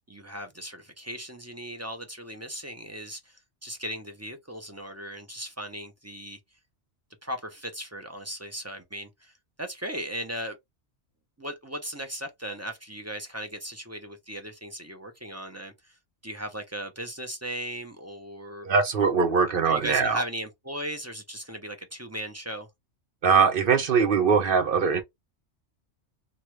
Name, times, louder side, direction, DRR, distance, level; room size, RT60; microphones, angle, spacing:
voice 1, 0.1-6.4 7.2-10.6 11.4-16.0 16.2-18.7 19.5-22.7, equal, 20° right, 0.5 m, -37 dB
voice 2, 18.6-20.2 23.2-25.0, right 5 dB, 55° right, 0.8 m, -22 dB
3.0 x 2.3 x 3.0 m
omnidirectional pair, 1.2 m